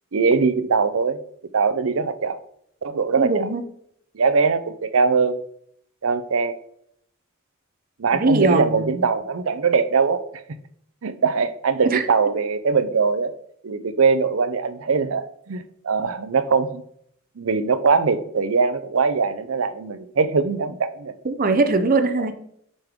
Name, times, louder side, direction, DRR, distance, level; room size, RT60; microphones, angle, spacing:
voice 1, 0.1-1.2 1.5-2.4 2.8-3.5 4.1-5.4 6.0-6.6 8.0-10.4 11.0-13.3 13.6-16.8 17.4-21.1 22.2-22.3, right 5 dB, 80° right, 12 dB, 0.6 m, -21 dB
voice 2, 3.2-3.6 8.1-9.0 11.8-12.0 21.2-22.3, right 3 dB, 45° right, 9 dB, 0.7 m, -21 dB
8.9 x 5.4 x 3.6 m, 0.70 s
head